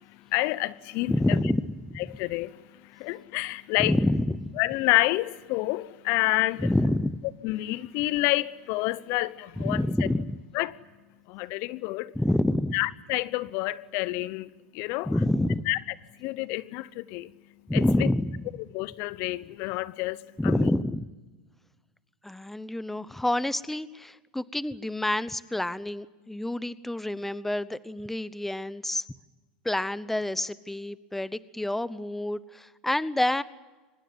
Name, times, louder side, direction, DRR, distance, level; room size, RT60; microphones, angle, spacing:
voice 1, 0.3-1.4 2.1-2.6 2.9-3.9 4.6-6.7 7.4-9.8 10.5-10.8 11.3-12.1 12.7-15.1 15.7-15.8 16.2-17.3 17.7-18.1 18.7-20.2 20.4-20.7, left 19 dB, 60° left, 0.9 m, -28 dB
voice 2, 1.1-2.0 3.8-4.6 6.6-7.2 9.6-10.4 12.1-12.8 15.1-15.7 17.7-18.4 20.4-21.1 22.2-29.0 29.6-33.4, left 1 dB, 5° left, 0.9 m, -27 dB
24.5 x 20.5 x 9.7 m
hypercardioid pair, 95°, 5 cm